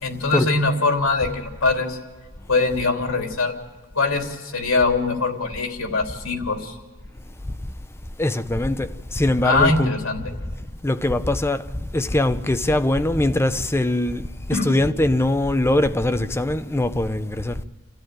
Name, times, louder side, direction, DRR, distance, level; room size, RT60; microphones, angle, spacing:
voice 1, 0.0-2.0 2.5-3.5 3.9-6.8 9.4-10.2 14.5-14.6, left 3 dB, 65° left, 3.2 m, -22 dB
voice 2, 8.2-9.9 10.8-11.6 11.9-17.6, left 1 dB, 10° left, 0.6 m, -22 dB
29.0 x 13.5 x 9.0 m
head